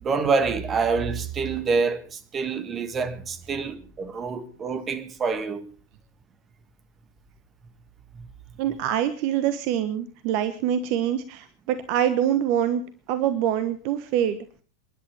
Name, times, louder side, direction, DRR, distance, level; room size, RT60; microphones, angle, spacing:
voice 1, 0.0-5.7 8.1-8.3, right 4 dB, 25° right, 1.9 m, -27 dB
voice 2, 8.6-12.8 13.1-14.4, right 10 dB, 45° right, 1.2 m, -25 dB
28.5 x 11.0 x 4.5 m
figure-of-eight pair, 90°, 0 cm